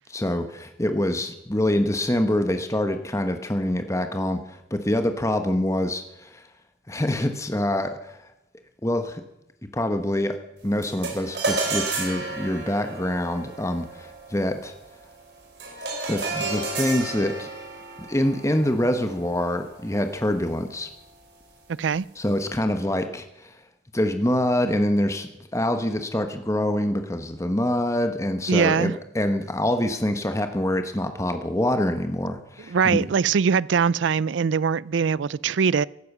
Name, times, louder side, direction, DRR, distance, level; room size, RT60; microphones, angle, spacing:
voice 1, 0.1-6.5 6.9-8.2 8.8-9.2 9.7-10.4 10.6-14.7 16.1-17.5 18.1-20.9 22.2-23.6 23.9-33.1, left 1 dB, 15° left, 1.1 m, -25 dB
sound 1, 10.8-20.3, right 3 dB, 60° right, 4.9 m, -32 dB
voice 2, 28.5-29.0 32.7-35.9, right 6 dB, 80° right, 0.4 m, -22 dB
15.5 x 12.0 x 6.1 m
head